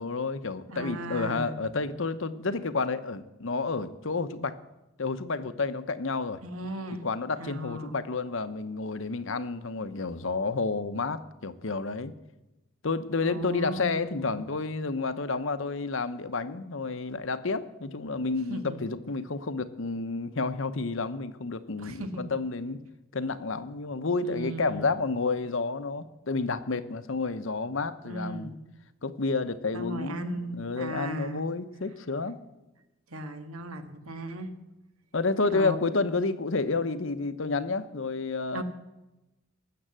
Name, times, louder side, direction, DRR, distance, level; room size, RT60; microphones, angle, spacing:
voice 1, 0.0-4.6 5.0-6.4 7.0-12.1 12.8-22.8 23.1-28.5 29.0-32.4 35.1-38.6, left 3 dB, 60° left, 12 dB, 0.9 m, -30 dB
voice 2, 0.7-1.5 6.4-7.0 7.4-8.0 13.2-14.5 18.5-18.8 21.8-22.3 24.2-24.9 28.0-28.6 29.7-31.4 33.1-34.5 35.5-35.8 38.5-38.6, right 1 dB, 80° right, 8 dB, 1.6 m, -37 dB
19.0 x 7.8 x 7.6 m, 0.98 s
head